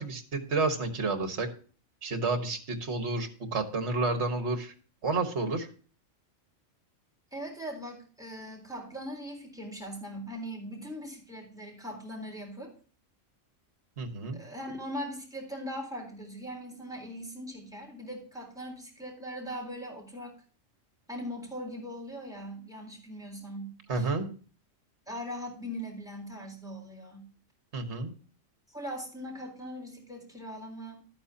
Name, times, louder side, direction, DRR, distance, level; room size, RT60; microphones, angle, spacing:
voice 1, 0.0-1.5 2.0-4.7 5.0-5.7 14.0-14.4 23.9-24.3 27.7-28.1, right 3 dB, 60° right, 7 dB, 1.7 m, -30 dB
voice 2, 7.3-12.7 14.3-20.4 21.1-24.1 25.1-27.3 28.7-31.1, equal, 5° right, 0 dB, 3.7 m, -40 dB
12.5 x 9.0 x 2.8 m, 0.40 s
omnidirectional pair, 1.3 m